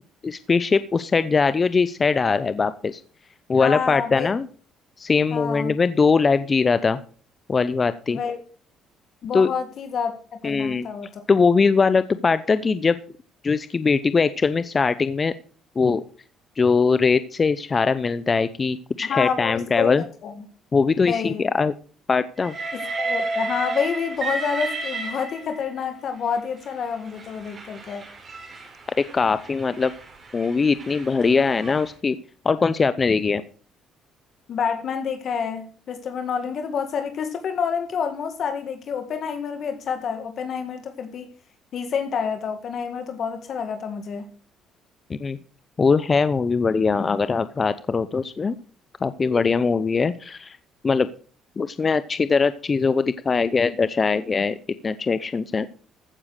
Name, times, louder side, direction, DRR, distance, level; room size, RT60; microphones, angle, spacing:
voice 1, 0.2-3.0 3.5-4.5 5.0-7.0 7.5-8.2 9.3-9.5 10.4-10.9 11.3-13.0 13.4-15.3 15.8-16.0 16.6-20.0 20.7-21.7 22.1-22.5 29.0-29.9 30.3-32.2 32.4-33.4 45.1-45.4 45.8-48.5 49.0-50.6 50.8-51.1 51.6-54.6 54.8-55.7, left 4 dB, 30° left, 14 dB, 0.7 m, -21 dB
voice 2, 3.5-4.3 5.3-5.8 8.1-8.4 9.2-10.1 10.4-11.2 19.1-19.9 20.2-20.4 21.1-21.5 22.7-28.0 34.5-41.3 41.7-44.3, left 6 dB, 55° left, 6 dB, 1.9 m, -28 dB
Train, 22.4-25.8 26.6-31.9, right 3 dB, 35° right, 4.5 m, -32 dB
15.0 x 7.0 x 6.5 m, 0.43 s
cardioid pair, 110°, 0 cm